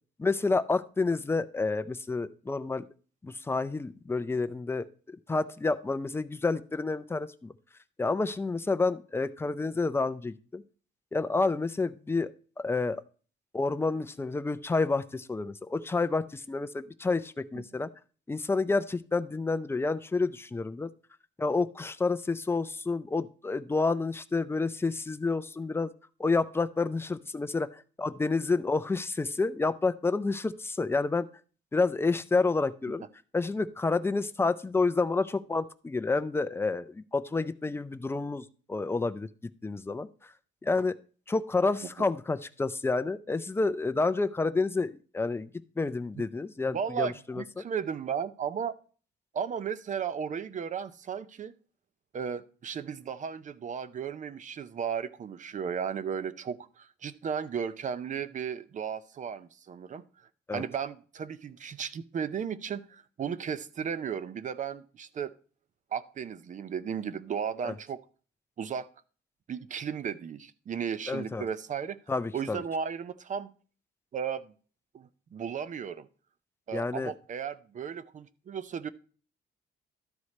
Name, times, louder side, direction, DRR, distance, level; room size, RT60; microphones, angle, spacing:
voice 1, 0.2-2.8 3.2-7.5 8.0-10.6 11.1-12.3 12.6-13.0 13.5-17.9 18.3-20.9 21.4-25.9 26.2-31.3 31.7-33.0 33.3-39.3 39.6-40.1 40.6-40.9 41.3-45.5 45.8-47.6 60.5-60.6 67.6-67.7 71.1-71.4 72.1-72.6 76.7-77.1, left 3 dB, 10° left, 0.4 m, -29 dB
voice 2, 46.7-48.7 49.3-51.5 52.1-60.0 60.5-65.3 65.9-68.0 68.6-68.9 69.5-72.0 72.3-73.5 74.1-74.5 74.9-76.1 76.7-78.9, right 7 dB, 40° right, 0.6 m, -35 dB
12.5 x 4.9 x 4.1 m
wide cardioid pair, 170°, 20 cm